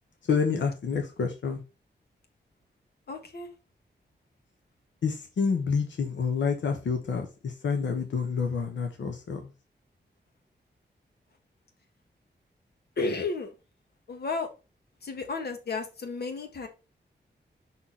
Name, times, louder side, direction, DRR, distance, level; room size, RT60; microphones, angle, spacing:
voice 1, 0.3-1.6 5.0-9.5, left 5 dB, 85° left, 1.2 m, -28 dB
voice 2, 3.1-3.5 13.0-13.5 14.1-14.5 15.0-16.7, left 3 dB, 60° left, 1.5 m, -32 dB
5.8 x 4.2 x 4.4 m
wide cardioid pair, 125°, 18 cm